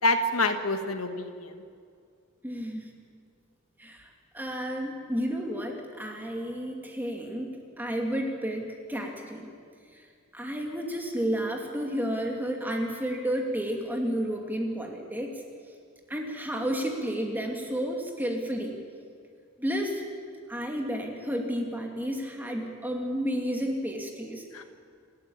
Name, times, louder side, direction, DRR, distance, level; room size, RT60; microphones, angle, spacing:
voice 1, 0.0-1.6 24.5-24.6, left 2 dB, 85° left, 7 dB, 1.6 m, -27 dB
voice 2, 2.4-2.9 3.8-4.1 4.3-9.5 10.3-15.3 16.1-18.8 19.6-20.0 20.5-24.4, equal, 10° right, 1 dB, 2.6 m, -31 dB
27.0 x 13.0 x 8.9 m, 2.2 s
head